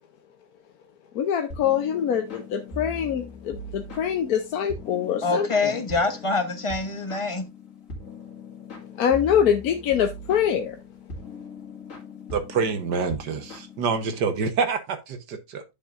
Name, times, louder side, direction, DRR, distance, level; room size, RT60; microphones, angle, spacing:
voice 1, 1.1-5.8 9.0-10.8, left 8 dB, 60° left, 1.1 m, -24 dB
Relaxing Lofi, 1.5-14.3, left 2 dB, 45° left, 2.7 m, -40 dB
voice 2, 5.2-7.5, left 3 dB, 30° left, 0.6 m, -25 dB
voice 3, 12.3-15.6, right 5 dB, 65° right, 1.7 m, -27 dB
10.5 x 6.2 x 2.5 m
omnidirectional pair, 2.0 m